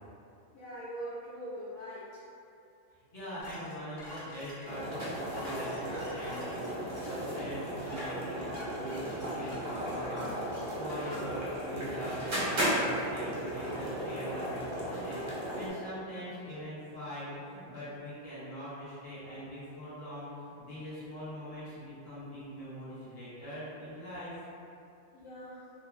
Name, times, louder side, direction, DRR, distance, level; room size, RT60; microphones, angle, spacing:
voice 1, 0.5-2.2 25.1-25.6, right 1 dB, 80° left, -9 dB, 1.0 m, -42 dB
voice 2, 2.9-20.3 20.6-24.4, equal, 50° left, -11 dB, 1.2 m, -42 dB
sound 1, 3.4-11.8 12.2-12.9, left 1 dB, 30° left, 0.5 m, -49 dB
sound 2, 4.6-15.7, equal, 45° right, 0.6 m, -35 dB
2.7 x 2.4 x 2.4 m, 2.6 s
omnidirectional pair, 1.4 m